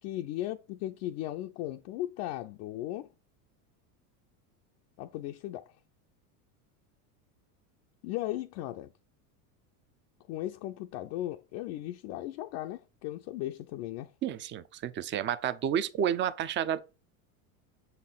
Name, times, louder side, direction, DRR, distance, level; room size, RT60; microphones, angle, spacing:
voice 1, 0.0-3.1 5.0-5.8 8.0-8.9 10.3-14.1, left 14 dB, 55° left, 0.5 m, -37 dB
voice 2, 14.2-16.8, right 9 dB, 25° right, 0.5 m, -30 dB
6.9 x 4.2 x 3.9 m
supercardioid pair, 120°, 45 cm